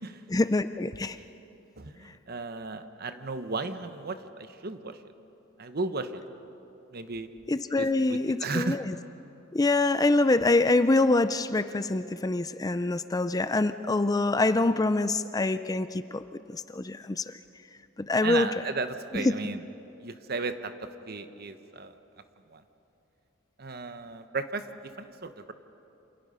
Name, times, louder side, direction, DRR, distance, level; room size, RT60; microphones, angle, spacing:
voice 1, 0.3-1.2 7.5-8.9 9.5-16.2 16.5-17.4 18.1-18.5 19.1-19.3, left 2 dB, 20° left, 12 dB, 0.4 m, -25 dB
voice 2, 1.8-5.0 5.6-6.2 6.9-7.3 7.8-8.8 18.2-19.6 20.0-20.7 21.1-21.9 22.5-22.6 23.6-25.5, right 3 dB, 50° right, 9 dB, 1.1 m, -35 dB
28.5 x 27.0 x 5.5 m, 2.9 s
head